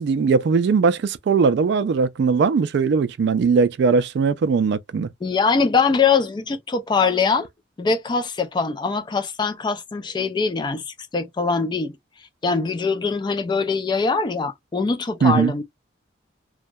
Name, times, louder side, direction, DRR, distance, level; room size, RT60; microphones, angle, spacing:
voice 1, 0.0-5.1 15.2-15.5, right 5 dB, 60° right, 0.3 m, -19 dB
voice 2, 5.2-7.5 7.8-12.0 12.4-15.6, left 5 dB, 25° left, 0.3 m, -22 dB
2.2 x 2.1 x 2.6 m
head